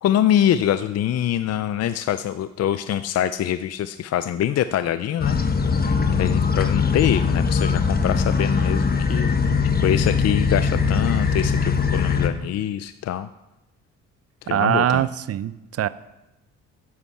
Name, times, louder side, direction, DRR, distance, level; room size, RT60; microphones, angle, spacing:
voice 1, 0.0-5.4 6.1-9.3 9.6-13.3 14.4-15.1, left 11 dB, 55° left, 12 dB, 0.5 m, -24 dB
sound 1, 5.2-12.3, left 5 dB, 30° left, 1.3 m, -21 dB
voice 2, 14.5-15.9, right 11 dB, 55° right, 16 dB, 0.6 m, -22 dB
10.0 x 9.8 x 7.2 m, 0.97 s
cardioid pair, 90°, 30 cm